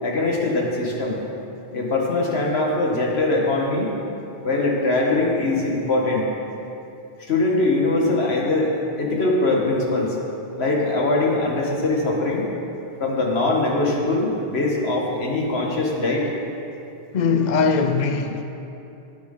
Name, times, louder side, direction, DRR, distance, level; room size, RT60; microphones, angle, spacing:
voice 1, 0.0-1.2 1.7-3.9 4.4-6.3 7.2-10.1 10.6-12.4 13.0-16.3, left 2 dB, 75° left, -1 dB, 1.8 m, -22 dB
voice 2, 17.1-18.4, left 5 dB, 50° left, 6 dB, 0.6 m, -20 dB
17.5 x 8.0 x 3.8 m, 2.8 s
omnidirectional pair, 1.1 m